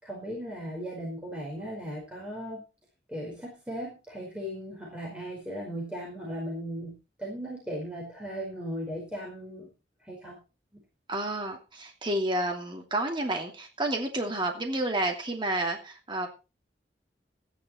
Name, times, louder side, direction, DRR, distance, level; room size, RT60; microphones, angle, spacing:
voice 1, 0.0-2.6 3.1-9.7 10.0-10.4 10.7-10.8, equal, 5° right, -4 dB, 4.9 m, -37 dB
voice 2, 11.1-16.3, right 1 dB, 30° right, 2 dB, 2.8 m, -30 dB
14.5 x 10.5 x 4.4 m, 0.31 s
head